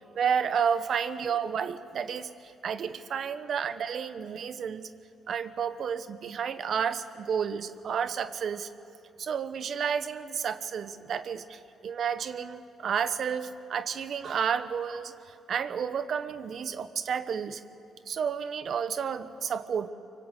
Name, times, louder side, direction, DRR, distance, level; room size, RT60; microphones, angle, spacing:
voice 1, 0.1-4.9 5.3-8.7 9.2-17.6 18.1-19.9, right 7 dB, 60° right, 12 dB, 1.0 m, -31 dB
24.5 x 23.5 x 8.3 m, 2.6 s
cardioid pair, 90°, 0 cm